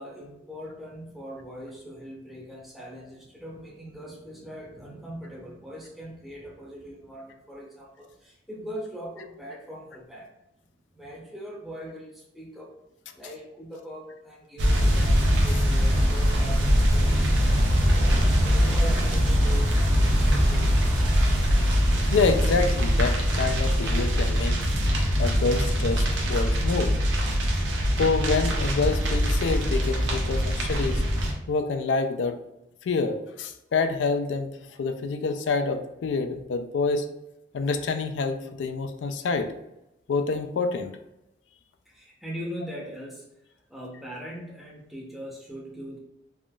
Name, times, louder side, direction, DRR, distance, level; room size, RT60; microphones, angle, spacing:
voice 1, 0.0-10.3 10.9-12.7 13.1-20.9 24.6-24.7 41.9-43.3 43.7-46.0, equal, ahead, -4 dB, 0.7 m, -41 dB
sound 1, 14.6-31.3, equal, 75° right, 0.6 m, -22 dB
voice 2, 22.1-24.6 25.2-27.0 28.0-31.0 31.5-32.4 32.8-34.5 34.8-37.1 37.5-39.5 40.1-40.9, left 4 dB, 75° left, 7 dB, 0.3 m, -27 dB
3.5 x 2.5 x 2.2 m, 0.90 s
head